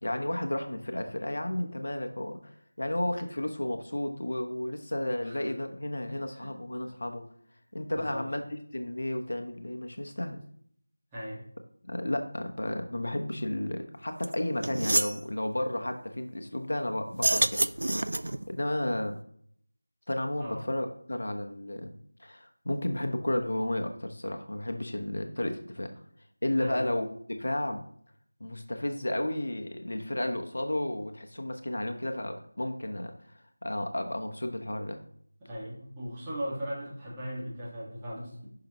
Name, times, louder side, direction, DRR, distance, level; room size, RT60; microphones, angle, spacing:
voice 1, 0.0-7.3 7.7-8.4 8.7-10.4 11.8-17.6 18.5-19.2 20.1-25.9 26.4-27.8 28.4-33.1 33.6-35.0, left 1 dB, 65° left, 6 dB, 1.1 m, -32 dB
voice 2, 6.1-6.5 7.9-8.2 11.1-11.4 20.4-20.6 26.6-26.8 35.4-38.5, equal, 10° right, -8 dB, 1.9 m, -38 dB
sound 1, 14.2-14.3 14.6-15.2 17.1-18.4, right 1 dB, 65° right, 0.4 m, -27 dB
10.0 x 5.9 x 3.1 m, 0.63 s
figure-of-eight pair, 175°, 0 cm